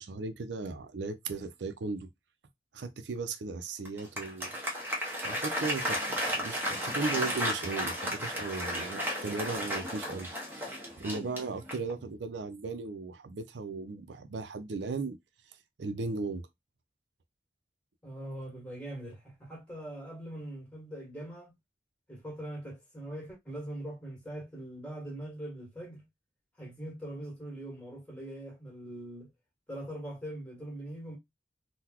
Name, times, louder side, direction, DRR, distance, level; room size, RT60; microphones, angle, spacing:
voice 1, 0.0-2.1 2.7-4.5 5.2-15.2 15.8-16.4, right 3 dB, 85° right, 0.5 m, -37 dB
Applause, 3.8-12.0, equal, 10° right, 0.8 m, -34 dB
voice 2, 18.0-21.5 22.1-26.0 26.6-29.3 29.7-31.2, right 1 dB, 10° left, 1.6 m, -42 dB
3.8 x 2.2 x 2.9 m
head